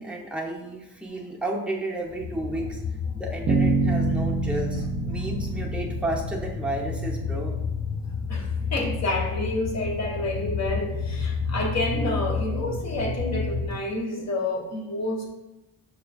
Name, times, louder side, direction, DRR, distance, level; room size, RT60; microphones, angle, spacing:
voice 1, 0.0-2.8 3.1-7.5, right 1 dB, 5° right, -3 dB, 0.6 m, -32 dB
sound 1, 2.1-13.7, left 4 dB, 85° left, 1.2 m, -31 dB
Bass guitar, 3.5-7.4, right 4 dB, 70° right, 0.5 m, -27 dB
voice 2, 8.3-15.3, left 2 dB, 45° left, 0 dB, 0.8 m, -29 dB
6.1 x 2.2 x 2.3 m, 0.97 s
wide cardioid pair, 105°, 37 cm